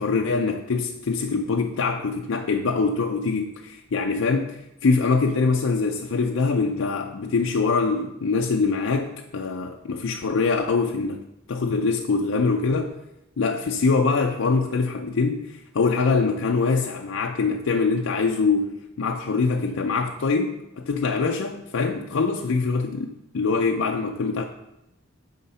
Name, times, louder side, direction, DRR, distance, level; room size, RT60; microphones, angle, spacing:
voice 1, 0.0-13.0 13.4-24.5, left 4 dB, 75° left, 2 dB, 0.5 m, -24 dB
9.6 x 3.7 x 5.5 m, 0.89 s
head